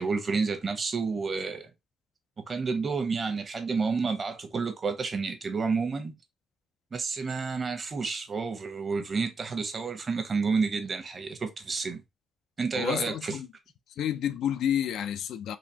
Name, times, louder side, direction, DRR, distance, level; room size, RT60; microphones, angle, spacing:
voice 1, 0.0-1.7 2.5-6.1 6.9-12.0 12.6-13.4, right 4 dB, 40° right, 1.0 m, -30 dB
voice 2, 12.7-13.5 13.9-15.6, left 10 dB, 75° left, 0.5 m, -30 dB
4.1 x 2.8 x 2.8 m
cardioid pair, 90°, 0 cm